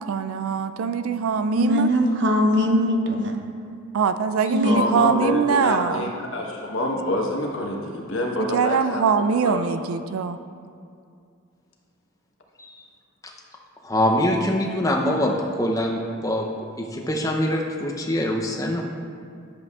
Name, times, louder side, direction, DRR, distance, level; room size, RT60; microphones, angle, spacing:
voice 1, 0.0-1.9 3.9-6.0 8.5-10.4, right 6 dB, 80° right, 11 dB, 0.3 m, -23 dB
voice 2, 1.5-3.4 4.5-4.8, left 1 dB, 55° right, 3 dB, 0.7 m, -21 dB
voice 3, 4.6-9.1 9.4-9.7, left 1 dB, 70° left, 0 dB, 1.1 m, -26 dB
voice 4, 13.8-16.4 16.8-18.8, left 1 dB, 15° left, 0 dB, 0.6 m, -24 dB
10.5 x 7.4 x 2.4 m, 2.4 s
head